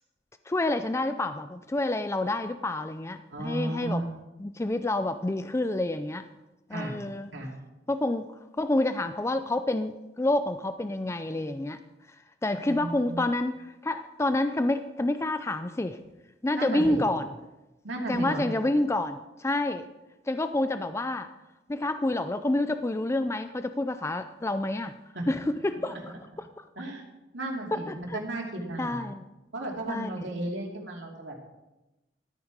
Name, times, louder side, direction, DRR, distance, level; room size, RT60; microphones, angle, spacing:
voice 1, 0.5-4.0 4.4-6.3 6.7-7.3 7.9-8.2 8.6-11.8 12.4-16.0 16.4-17.3 18.1-19.9 20.3-21.3 21.7-25.0 25.3-26.6 27.7-28.2 28.8-29.3 29.9-30.1, left 2 dB, 15° left, 10 dB, 0.4 m, -28 dB
voice 2, 3.3-4.1 6.7-7.0 7.3-7.5 12.6-13.2 16.5-17.0 17.8-18.4 25.1-25.2 26.8-27.0 27.3-29.1 29.5-31.4, right 1 dB, 85° right, 0 dB, 2.7 m, -34 dB
13.5 x 9.1 x 4.8 m, 1.0 s
head